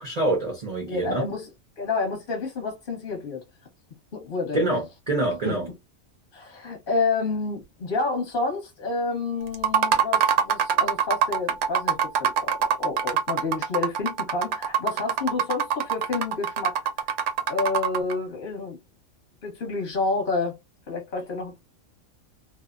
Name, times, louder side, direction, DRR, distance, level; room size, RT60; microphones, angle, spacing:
voice 1, 0.0-1.3 4.5-5.7, right 2 dB, 45° right, 0.5 m, -26 dB
voice 2, 0.9-1.5 1.8-3.4 4.1-4.6 5.4-5.6 6.3-16.7 17.5-18.8 19.4-20.6 20.9-21.6, left 4 dB, 40° left, 1.0 m, -29 dB
sound 1, 9.5-18.1, right 8 dB, 65° right, 0.8 m, -24 dB
2.6 x 2.0 x 2.3 m
omnidirectional pair, 1.4 m